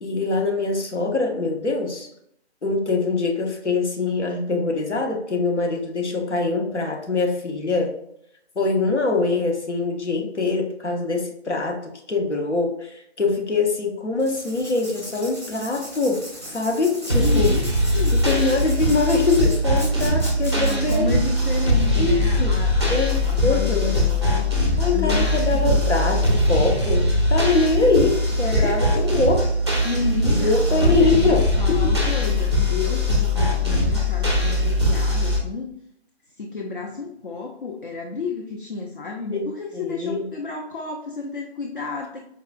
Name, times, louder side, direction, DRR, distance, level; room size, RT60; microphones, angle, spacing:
voice 1, 0.0-2.1 2.6-7.9 8.6-17.6 18.1-21.1 22.0-22.5 22.9-24.0 24.8-29.4 30.2-31.9 39.3-39.5 39.7-40.3, left 3 dB, 80° left, 1 dB, 0.9 m, -23 dB
Writing, 14.2-21.0, equal, 15° left, 0.7 m, -38 dB
voice 2, 17.1-18.5 19.9-20.0 20.5-23.0 23.3-24.5 24.9-25.8 28.4-29.1 29.8-35.7 36.4-42.2, left 4 dB, 50° left, 1 dB, 0.5 m, -31 dB
sound 1, 17.1-35.4, left 1 dB, 25° right, 0.4 m, -21 dB
4.6 x 2.3 x 2.3 m, 0.73 s
figure-of-eight pair, 150°, 34 cm